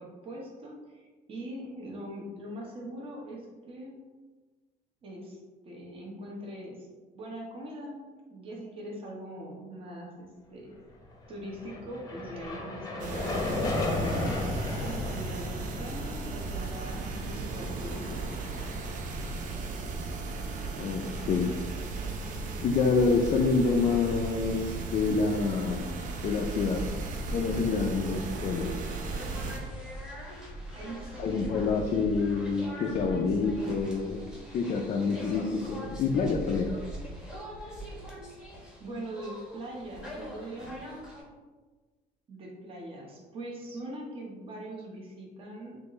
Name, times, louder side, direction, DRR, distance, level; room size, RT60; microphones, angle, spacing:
voice 1, 0.0-4.0 5.0-6.9 7.1-10.8 11.3-14.4 14.8-18.4 30.7-31.6 38.8-41.0 42.3-45.8, right 1 dB, 30° right, -2 dB, 1.0 m, -42 dB
sound 1, 11.3-19.7, left 2 dB, 20° left, 0.7 m, -35 dB
sound 2, 13.0-29.6, right 3 dB, 50° right, 0.6 m, -36 dB
voice 2, 20.8-21.5 22.6-25.9 26.2-26.8 27.3-28.9 31.2-34.2 34.5-36.7, left 4 dB, 40° left, 1 dB, 0.4 m, -27 dB
sound 3, 29.0-41.2, equal, 5° right, 1.0 m, -42 dB
6.4 x 2.6 x 3.1 m, 1.3 s
cardioid pair, 150°, 17 cm